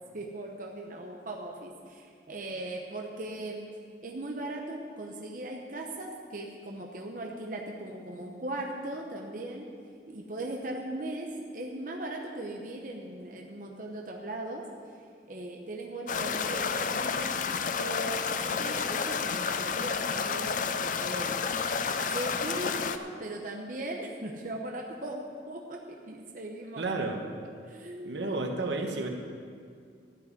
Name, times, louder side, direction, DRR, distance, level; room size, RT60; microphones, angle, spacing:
voice 1, 0.1-3.7 4.0-9.7 10.1-14.6 15.3-17.3 17.8-21.5 22.0-26.8 27.7-28.3, right 1 dB, 45° right, 0 dB, 0.9 m, -38 dB
sound 1, 16.1-23.0, left 5 dB, 45° left, 0.5 m, -30 dB
voice 2, 26.8-27.2 28.0-29.1, right 2 dB, 80° right, 3 dB, 1.3 m, -31 dB
13.0 x 5.4 x 9.2 m, 2.2 s
head